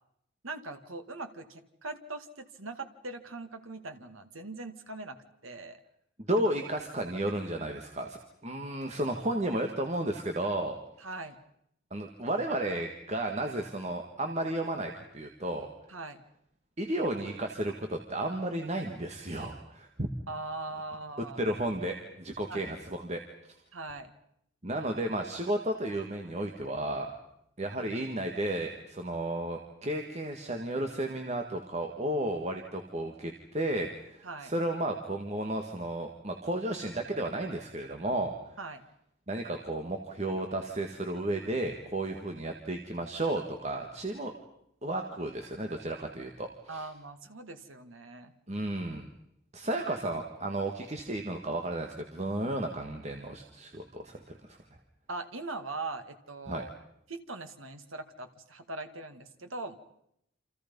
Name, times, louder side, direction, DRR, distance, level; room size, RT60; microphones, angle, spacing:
voice 1, 0.4-5.2 5.4-5.8 11.0-11.4 15.9-16.2 20.3-21.5 22.5-22.8 23.7-24.1 34.2-34.5 38.6-38.8 46.7-48.3 55.1-56.7 57.1-59.8, right 3 dB, 80° right, 8 dB, 2.1 m, -41 dB
voice 2, 6.2-10.8 11.9-15.7 16.8-20.1 21.4-23.2 24.6-27.2 27.6-38.4 39.3-44.3 44.8-46.8 48.5-49.1 49.5-54.6 56.5-56.6, right 1 dB, 35° right, 4 dB, 1.8 m, -33 dB
28.5 x 27.0 x 5.4 m, 0.75 s
head